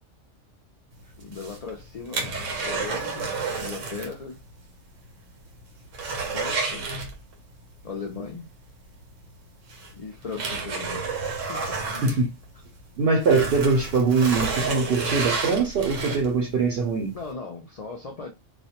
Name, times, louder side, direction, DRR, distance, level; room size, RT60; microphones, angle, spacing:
voice 1, 1.0-3.3 3.6-4.4 6.2-6.9 7.8-8.5 9.9-11.1 11.5-11.8 17.1-18.3, left 4 dB, 75° left, 0.3 m, -37 dB
sound 1, 1.2-4.2 4.5-4.6 5.0-5.1 5.5-7.5 8.9-9.0 9.7-12.8 13.1-16.5 17.0-17.1, right 4 dB, 85° right, 1.1 m, -30 dB
voice 2, 13.0-17.1, right 4 dB, 60° right, 0.7 m, -22 dB
2.3 x 2.1 x 2.8 m
omnidirectional pair, 1.3 m